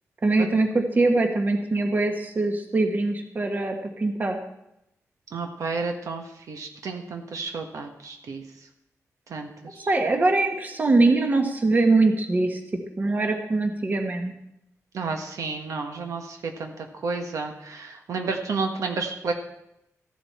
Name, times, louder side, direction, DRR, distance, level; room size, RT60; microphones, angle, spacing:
voice 1, 0.2-4.4 9.9-12.6 13.0-14.3, right 2 dB, 30° right, 4 dB, 1.4 m, -22 dB
voice 2, 5.3-8.4 9.3-9.9 14.9-19.3, right 4 dB, 75° right, 4 dB, 1.4 m, -31 dB
14.5 x 11.0 x 4.4 m, 0.83 s
wide cardioid pair, 160°, 6 cm